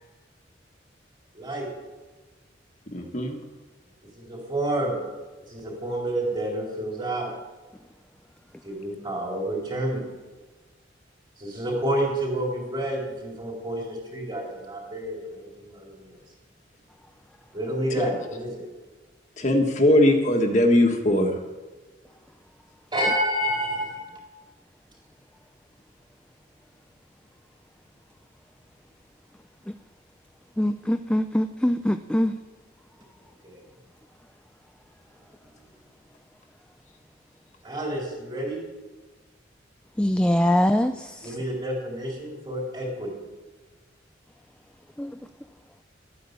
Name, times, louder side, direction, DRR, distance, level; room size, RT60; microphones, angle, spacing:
voice 1, 1.3-1.7 4.2-5.0 5.5-7.3 8.6-10.0 11.4-16.2 17.5-18.6 22.9-24.0 33.4-33.5 37.6-38.6 41.2-43.2, right 1 dB, 25° right, -1 dB, 4.2 m, -29 dB
voice 2, 2.9-3.4 17.9-18.1 19.4-21.3, left 1 dB, 40° left, 3 dB, 1.6 m, -20 dB
voice 3, 30.6-32.4 40.0-41.4 45.0-45.2, left 1 dB, 5° left, 9 dB, 0.4 m, -23 dB
13.0 x 9.4 x 8.5 m, 1.3 s
head